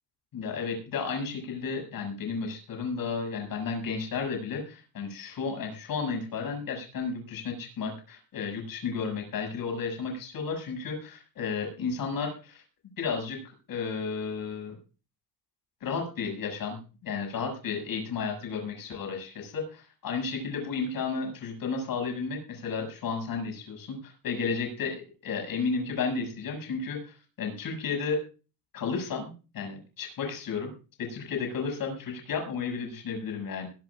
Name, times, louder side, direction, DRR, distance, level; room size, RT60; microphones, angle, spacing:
voice 1, 0.3-12.6 13.0-13.4 13.7-14.8 15.8-28.2 28.7-30.7 31.0-33.7, left 5 dB, 65° left, 3 dB, 6.9 m, -33 dB
21.5 x 12.0 x 2.5 m, 0.35 s
cardioid pair, 130°, 37 cm